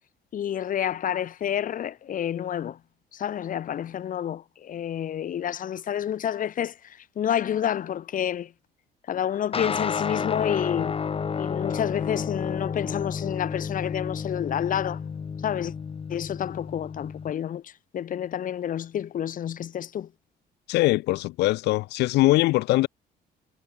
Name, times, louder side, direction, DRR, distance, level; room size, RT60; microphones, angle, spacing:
voice 1, 0.3-2.8 3.1-8.5 9.1-10.9 11.4-15.0 15.4-15.7 16.1-20.1, left 10 dB, 50° left, 3.1 m, -29 dB
sound 1, 9.5-17.3, left 6 dB, 35° left, 3.9 m, -31 dB
voice 2, 20.7-22.9, left 19 dB, 85° left, 1.8 m, -22 dB
cardioid pair, 110°, 17 cm